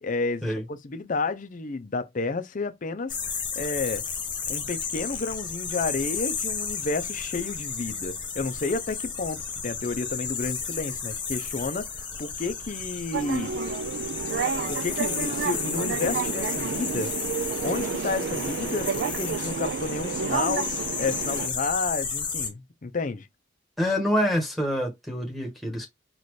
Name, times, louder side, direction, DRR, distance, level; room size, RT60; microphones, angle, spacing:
voice 1, 0.0-4.0 4.5-13.5 14.7-17.1 17.6-23.3, left 3 dB, 40° left, 0.5 m, -31 dB
sound 1, 3.1-22.5, left 5 dB, 25° left, 1.0 m, -33 dB
sound 2, 13.1-21.5, right 6 dB, 60° right, 0.3 m, -30 dB
voice 2, 23.8-25.9, equal, ahead, 1.2 m, -26 dB
4.2 x 2.5 x 3.1 m
head